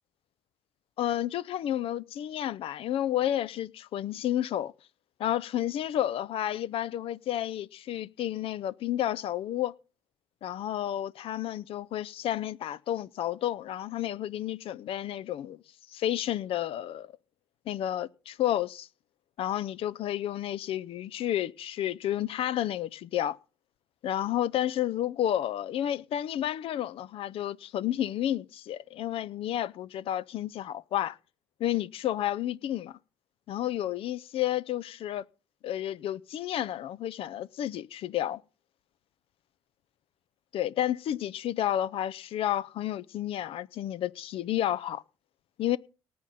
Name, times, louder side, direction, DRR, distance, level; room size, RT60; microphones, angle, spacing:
voice 1, 1.0-4.7 5.2-9.7 10.4-15.6 15.9-17.1 17.7-18.9 19.4-23.4 24.0-31.2 31.6-33.0 33.5-35.3 35.6-38.4 40.5-45.0 45.6-45.8, left 12 dB, 55° left, 0.5 m, -31 dB
19.0 x 8.5 x 4.1 m
figure-of-eight pair, 45°, 12 cm